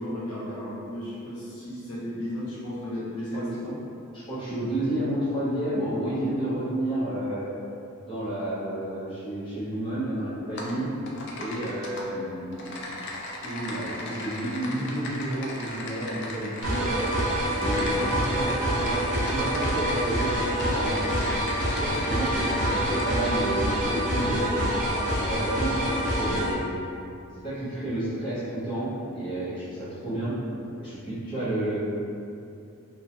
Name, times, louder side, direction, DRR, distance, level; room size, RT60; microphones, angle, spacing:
voice 1, 0.0-3.7, left 1 dB, 80° left, -9 dB, 0.8 m, -34 dB
voice 2, 4.1-7.5 8.1-10.9 11.4-12.7 13.4-17.1 17.6-21.0 21.6-24.7 25.2-26.6 27.4-30.3 30.8-31.8, right 1 dB, 20° left, -12 dB, 0.9 m, -31 dB
Typing, 10.6-10.7 11.1-12.0 12.5-23.3, left 2 dB, 50° left, 0.4 m, -37 dB
sound 1, 16.6-26.5, equal, 35° right, 0.6 m, -26 dB
3.0 x 2.2 x 2.7 m, 2.6 s
head